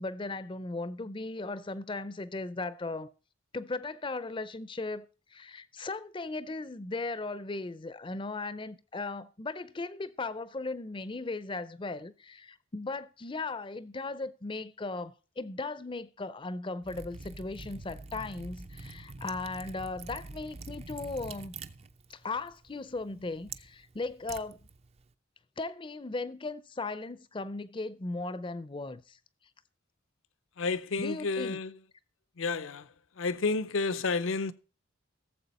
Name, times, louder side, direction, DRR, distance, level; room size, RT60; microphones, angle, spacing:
voice 1, 0.0-3.1 3.5-21.5 22.1-24.6 25.6-29.2 31.0-31.6, left 3 dB, 25° left, 0.5 m, -37 dB
Liquid, 16.8-25.1, right 3 dB, 30° right, 0.4 m, -46 dB
voice 2, 30.6-31.7 32.4-32.9 33.2-34.5, left 4 dB, 70° left, 0.6 m, -30 dB
16.5 x 7.4 x 4.2 m
head